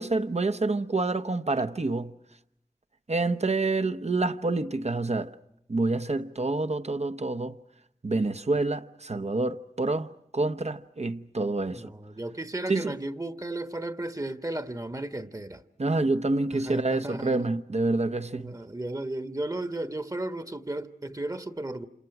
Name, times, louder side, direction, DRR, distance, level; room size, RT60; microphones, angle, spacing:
voice 1, 0.0-2.1 3.1-5.3 5.7-7.5 8.0-11.9 12.7-13.0 15.8-18.5, right 2 dB, 50° right, 1.1 m, -27 dB
voice 2, 11.7-15.6 16.5-17.5 18.4-21.9, right 1 dB, 25° right, 1.4 m, -34 dB
28.5 x 27.5 x 6.0 m
wide cardioid pair, 50°, 14 cm